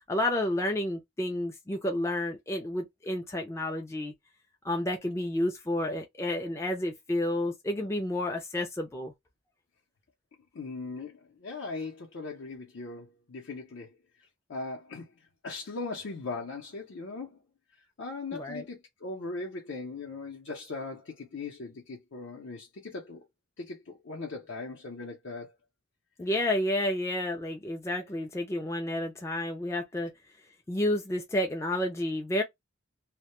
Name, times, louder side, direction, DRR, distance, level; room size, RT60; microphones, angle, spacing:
voice 1, 0.1-4.1 4.6-9.1 18.3-18.6 26.2-30.1 30.7-32.4, left 1 dB, 15° left, 0.3 m, -30 dB
voice 2, 10.5-13.9 14.5-15.1 15.4-17.4 18.0-23.2 23.6-25.5, left 3 dB, 65° left, 0.6 m, -39 dB
2.1 x 2.1 x 2.9 m
head